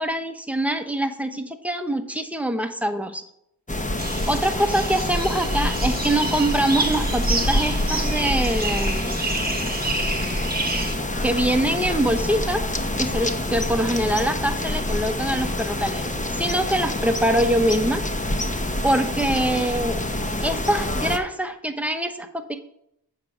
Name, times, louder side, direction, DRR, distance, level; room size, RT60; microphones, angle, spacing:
voice 1, 0.0-3.2 4.3-9.2 11.2-18.0 18.8-20.0 20.4-22.6, right 1 dB, 5° right, 6 dB, 0.9 m, -24 dB
sound 1, 3.7-21.2, left 1 dB, 20° left, 0.9 m, -26 dB
sound 2, 4.0-11.0, right 2 dB, 20° right, 1.2 m, -30 dB
sound 3, 11.0-17.1, left 1 dB, 85° left, 2.7 m, -48 dB
7.5 x 4.9 x 6.1 m, 0.76 s
cardioid pair, 45°, 40 cm